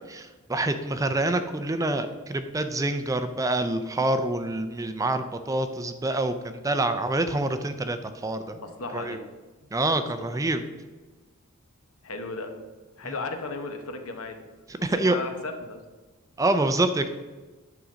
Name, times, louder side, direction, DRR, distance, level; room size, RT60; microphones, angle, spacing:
voice 1, 0.1-8.6 8.9-9.2 9.7-10.6 13.0-13.1 14.7-15.2 16.4-17.1, right 2 dB, 15° right, 9 dB, 0.4 m, -26 dB
voice 2, 8.5-9.2 12.0-12.5 13.0-14.4 15.0-15.8, left 3 dB, 75° left, 6 dB, 1.0 m, -35 dB
9.8 x 3.8 x 6.2 m, 1.2 s
head